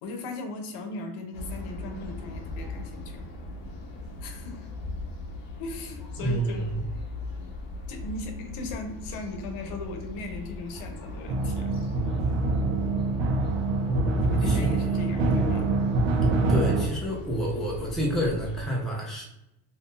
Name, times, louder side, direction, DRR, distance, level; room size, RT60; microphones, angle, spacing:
voice 1, 0.0-3.3 4.2-4.7 5.6-6.7 7.9-11.8 14.2-15.7, left 3 dB, 85° left, 5 dB, 0.8 m, -38 dB
sound 1, 1.3-18.6, left 2 dB, 45° left, 0.8 m, -39 dB
voice 2, 6.2-6.8 13.9-14.7 16.5-19.2, right 1 dB, ahead, -2 dB, 0.4 m, -29 dB
Futuristic High Tension Drums Only, 11.3-16.9, right 3 dB, 60° right, 0.7 m, -25 dB
2.7 x 2.5 x 3.6 m, 0.85 s
cardioid pair, 135°, 49 cm